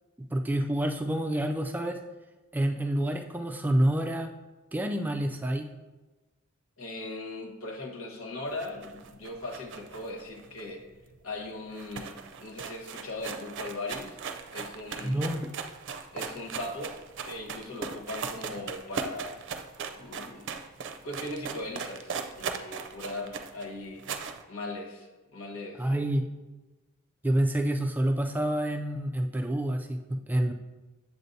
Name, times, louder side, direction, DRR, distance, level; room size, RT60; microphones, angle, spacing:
voice 1, 0.2-2.0 2.5-4.3 4.7-5.7 15.0-15.5 25.8-26.3 27.2-30.5, right 1 dB, 10° right, 4 dB, 0.3 m, -28 dB
voice 2, 6.8-10.8 11.2-14.2 14.5-15.3 16.1-16.9 17.2-19.4 20.0-20.5 20.8-24.0 24.5-25.9, left 2 dB, 70° left, 0 dB, 1.3 m, -39 dB
sound 1, 8.5-11.1 11.4-11.5 11.7-24.4, right 6 dB, 60° right, 0.5 m, -38 dB
7.9 x 7.7 x 2.7 m, 1.2 s
head